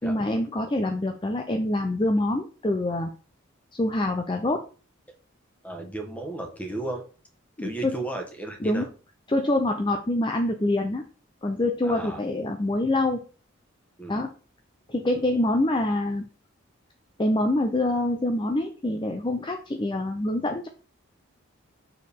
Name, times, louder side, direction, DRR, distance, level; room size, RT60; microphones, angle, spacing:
voice 1, 0.0-3.1 3.8-4.6 7.6-7.9 8.6-8.8 9.3-11.0 11.4-13.2 14.1-14.3 14.9-16.2 17.2-20.7, left 1 dB, 20° left, 5 dB, 0.5 m, -25 dB
voice 2, 5.6-7.0 7.6-8.9 11.8-12.2 14.0-14.2, right 2 dB, 5° left, 3 dB, 1.1 m, -34 dB
6.3 x 4.6 x 3.5 m, 0.38 s
head